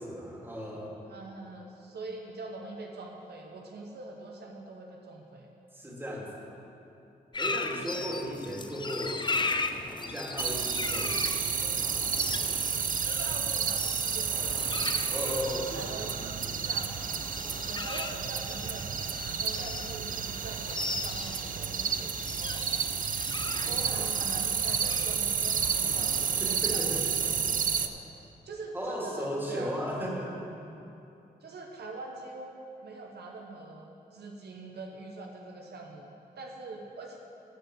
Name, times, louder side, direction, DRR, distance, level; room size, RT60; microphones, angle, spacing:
voice 1, 0.0-1.0 5.7-6.6 7.4-9.5 10.0-11.8 15.1-16.2 26.4-27.0 28.7-30.3, equal, 10° right, -3 dB, 2.6 m, -36 dB
voice 2, 1.1-5.5 7.9-8.1 13.0-14.7 15.4-17.0 17.7-23.0 23.7-28.0 28.4-29.8 31.4-37.2, right 3 dB, 75° right, 0 dB, 1.1 m, -44 dB
sound 1, 7.3-27.0, left 3 dB, 25° left, 0.6 m, -38 dB
sound 2, 10.4-27.9, right 6 dB, 55° right, 0.6 m, -31 dB
13.0 x 5.1 x 7.8 m, 2.8 s
cardioid pair, 60°, 17 cm